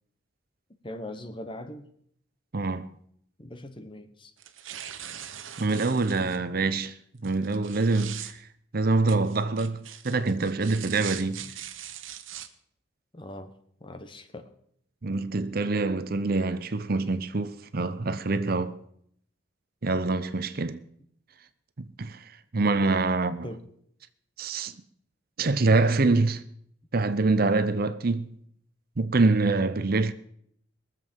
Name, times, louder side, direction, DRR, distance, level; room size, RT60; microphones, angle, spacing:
voice 1, 0.8-1.9 3.4-4.3 11.3-11.5 13.1-13.5 13.8-14.5 23.4-23.7, left 1 dB, 25° left, 1.0 m, -41 dB
voice 2, 2.5-2.9 5.6-6.9 7.2-8.4 8.7-11.4 15.0-18.8 19.8-20.8 21.8-22.2 22.5-23.5 24.4-24.7 25.4-26.4 26.9-28.3 29.0-30.1, right 3 dB, 50° right, 0.7 m, -25 dB
sound 1, 4.4-6.4 7.2-8.3 9.1-12.5, right 10 dB, 85° right, 1.1 m, -41 dB
22.0 x 7.6 x 5.3 m
head